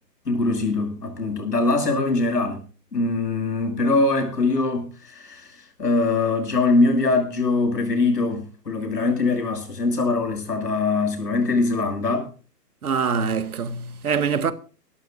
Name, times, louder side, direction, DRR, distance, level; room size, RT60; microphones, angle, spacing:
voice 1, 0.3-2.6 2.9-12.3, left 3 dB, 70° left, 7.4 m, -22 dB
voice 2, 12.8-14.5, right 6 dB, 60° right, 1.7 m, -24 dB
26.5 x 13.0 x 2.6 m
figure-of-eight pair, 140°, 50 cm